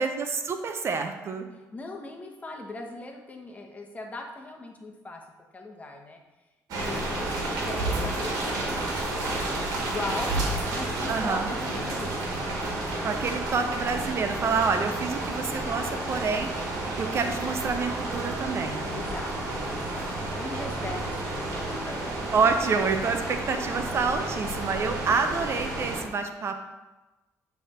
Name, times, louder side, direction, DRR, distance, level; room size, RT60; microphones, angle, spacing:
voice 1, 0.0-1.5 11.1-11.5 13.0-16.5 17.0-18.8 22.3-26.7, right 5 dB, 45° right, 7 dB, 0.6 m, -27 dB
voice 2, 1.5-5.2 5.5-6.2 6.7-9.5 9.7-10.4 10.7-13.4 18.9-20.1 20.3-22.0 22.9-23.1 25.1-25.2, left 2 dB, 25° left, 2 dB, 1.1 m, -40 dB
sound 1, 6.7-26.0, right 2 dB, 80° right, 1.6 m, -31 dB
8.7 x 3.4 x 4.3 m, 1.1 s
cardioid pair, 95°, 6 cm